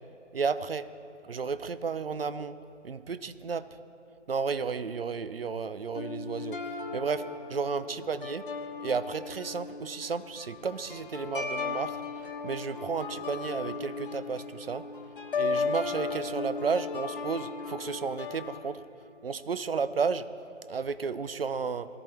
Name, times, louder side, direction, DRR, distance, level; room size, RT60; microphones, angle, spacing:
voice 1, 0.3-0.9 1.2-2.6 2.8-3.7 4.3-6.6 6.9-7.2 7.5-8.4 8.8-12.0 12.4-14.9 15.4-18.8 19.2-20.3 20.7-21.9, right 5 dB, 50° right, 14 dB, 0.6 m, -32 dB
sound 1, 6.0-18.6, left 4 dB, 45° left, 1.3 m, -36 dB
17.5 x 13.0 x 4.3 m, 2.6 s
figure-of-eight pair, 155°, 37 cm